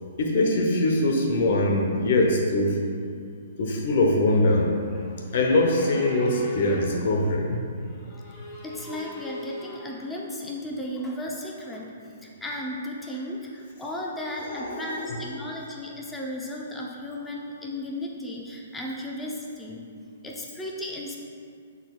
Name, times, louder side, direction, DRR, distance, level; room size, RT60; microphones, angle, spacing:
voice 1, 0.2-2.8 3.6-4.7 5.3-7.6 14.5-15.0, left 1 dB, 60° left, 1 dB, 1.0 m, -22 dB
sound 1, 4.8-7.3 7.8-10.1, left 2 dB, 35° left, 1.0 m, -40 dB
voice 2, 8.6-11.9 12.2-19.9 20.2-21.2, left 1 dB, 10° left, -3 dB, 0.8 m, -35 dB
12.0 x 4.2 x 2.4 m, 2.3 s
hypercardioid pair, 130°, 0 cm